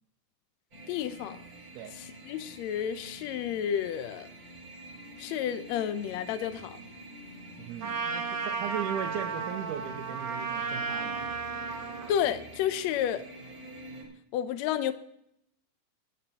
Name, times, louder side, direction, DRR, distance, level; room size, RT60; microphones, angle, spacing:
sound 1, 0.7-14.0, right 1 dB, 25° right, 4.4 m, -47 dB
voice 1, 0.9-1.4 1.9-4.3 5.2-6.8 12.1-13.2 14.3-14.9, left 10 dB, 75° left, 1.7 m, -31 dB
voice 2, 7.6-11.3, right 10 dB, 90° right, 2.2 m, -37 dB
Trumpet, 7.8-12.1, right 5 dB, 60° right, 1.1 m, -34 dB
19.5 x 11.0 x 2.9 m
omnidirectional pair, 3.6 m